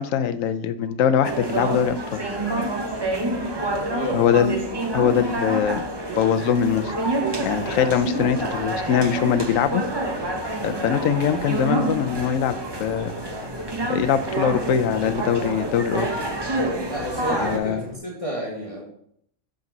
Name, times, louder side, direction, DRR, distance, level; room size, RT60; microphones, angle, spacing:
voice 1, 0.0-2.2 4.1-4.6 4.9-5.8 6.2-6.9 7.4-9.8 10.6-13.1 13.9-16.1 17.4-17.8, left 8 dB, 75° left, 11 dB, 1.0 m, -22 dB
sound 1, 1.2-17.6, right 2 dB, 20° right, 0.8 m, -28 dB
voice 2, 3.9-4.4 10.8-11.1 16.9-18.8, right 1 dB, 25° left, -5 dB, 1.6 m, -31 dB
sound 2, 6.6-18.0, left 1 dB, 5° right, 1.9 m, -43 dB
7.0 x 5.3 x 3.9 m, 0.67 s
omnidirectional pair, 1.4 m